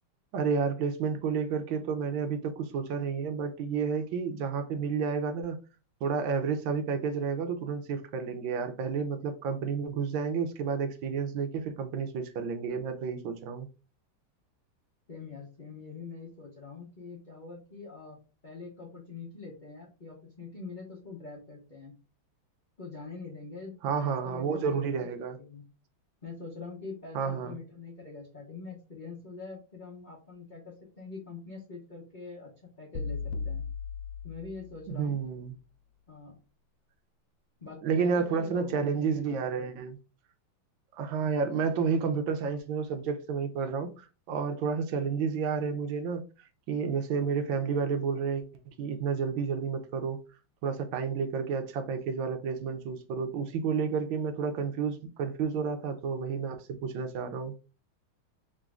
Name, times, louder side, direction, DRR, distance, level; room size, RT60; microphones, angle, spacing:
voice 1, 0.3-5.6 6.0-13.7 23.8-25.4 27.1-27.6 34.9-35.6 37.8-40.0 40.9-48.4 48.8-50.2 50.6-57.5, right 5 dB, 75° right, 1.4 m, -31 dB
voice 2, 15.1-21.9 22.8-23.7 24.0-25.1 25.4-25.6 26.2-32.5 32.8-33.6 34.2-35.2 36.1-36.4 37.6-39.5, left 4 dB, 40° left, 0.7 m, -44 dB
sound 1, 32.9-35.1, left 5 dB, 80° left, 1.4 m, -37 dB
3.9 x 3.1 x 3.5 m
omnidirectional pair, 2.3 m